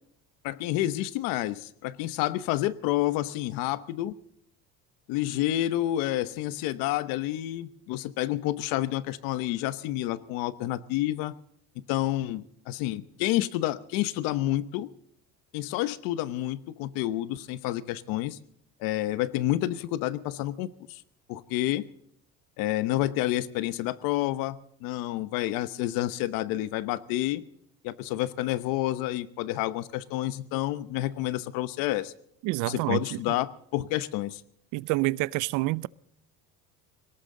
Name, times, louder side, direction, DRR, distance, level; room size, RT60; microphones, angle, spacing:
voice 1, 0.4-4.1 5.1-11.3 11.9-14.9 15.5-18.4 18.8-21.0 21.3-21.8 22.6-27.4 27.8-32.1 32.6-34.4, left 15 dB, 85° left, 1.0 m, -29 dB
voice 2, 32.4-33.2 34.7-35.9, right 20 dB, 65° right, 0.5 m, -27 dB
19.0 x 18.5 x 3.8 m
cardioid pair, 165°, 33 cm